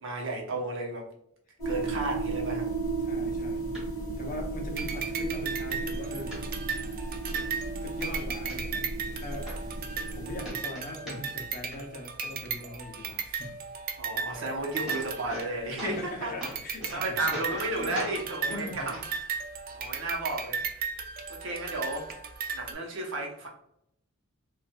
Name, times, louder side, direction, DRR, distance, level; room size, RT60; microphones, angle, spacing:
voice 1, 0.0-1.1 1.6-2.7 14.0-16.3 16.9-19.0 19.7-21.0 21.3-22.1 22.5-23.5, right 2 dB, 65° right, 0 dB, 0.8 m, -33 dB
sound 1, 1.6-10.5, right 3 dB, 20° left, 1.4 m, -34 dB
voice 2, 3.0-3.7 4.2-6.3 7.8-8.9 9.1-9.5 10.1-13.6 15.7-17.4 17.8-18.1 18.5-19.0, left 2 dB, 40° left, 2 dB, 0.7 m, -40 dB
sound 2, 3.7-3.8 4.3-4.4 4.8-4.9 5.3-5.8 6.3-6.9 7.3-7.4 7.8-8.6 9.1-9.2 9.5-10.1 10.4-11.5 11.7-12.3 14.3-14.4 14.6-15.5 15.8-16.1 16.4-17.0 17.3-17.7 17.9-18.2 18.9-19.0 19.9-20.0, equal, 5° right, 1.5 m, -40 dB
sound 3, 4.8-16.0 16.4-22.7, right 6 dB, 45° right, 0.4 m, -36 dB
4.1 x 2.4 x 2.2 m, 0.75 s
head